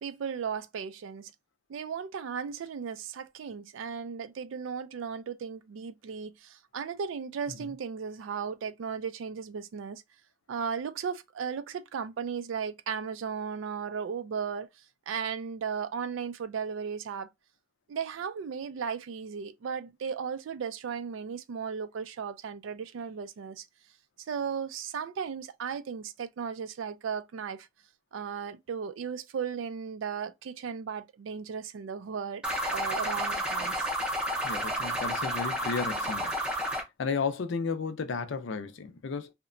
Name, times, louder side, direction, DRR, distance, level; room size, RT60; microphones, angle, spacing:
voice 1, 0.0-1.3 1.7-10.0 10.5-14.7 15.1-17.3 17.9-23.7 24.3-27.7 28.1-32.4 32.7-33.9, right 6 dB, 65° right, 0.3 m, -36 dB
sound 1, 32.4-36.8, equal, 5° right, 0.5 m, -31 dB
voice 2, 34.4-36.3 37.0-39.3, left 5 dB, 60° left, 0.4 m, -33 dB
2.8 x 2.1 x 2.5 m
head